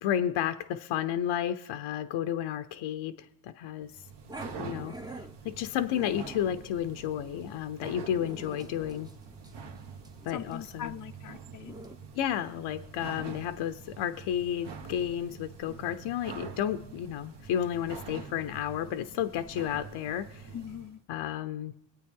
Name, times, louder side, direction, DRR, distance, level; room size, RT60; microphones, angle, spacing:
voice 1, 0.0-4.0 4.6-5.0 5.4-9.1 10.2-10.9 12.1-20.5 21.1-21.7, left 10 dB, 75° left, 9 dB, 0.8 m, -32 dB
sound 1, 3.8-21.0, right 5 dB, 55° right, 1.4 m, -46 dB
Growling, 4.3-12.0, right 1 dB, 10° right, 0.7 m, -47 dB
voice 2, 10.3-11.7 20.5-21.0, left 9 dB, 40° left, 5 dB, 0.5 m, -41 dB
23.0 x 8.6 x 3.7 m, 0.80 s
supercardioid pair, 65°, 48 cm